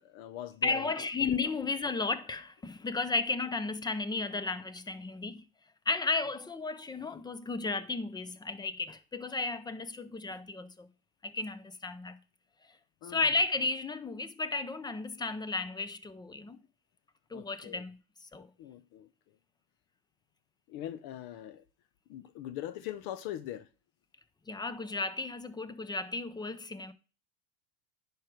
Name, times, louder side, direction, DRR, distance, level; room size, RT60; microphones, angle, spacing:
voice 1, 0.0-0.9 1.2-1.3 13.0-13.2 17.3-17.8 18.6-19.1 20.7-21.6 22.1-23.7, left 12 dB, 55° left, 0.8 m, -41 dB
voice 2, 0.6-5.4 5.9-10.9 11.2-12.2 13.0-16.6 17.3-18.5 24.5-26.9, left 3 dB, 10° left, 0.4 m, -34 dB
10.0 x 4.8 x 4.5 m
supercardioid pair, 115°, 41 cm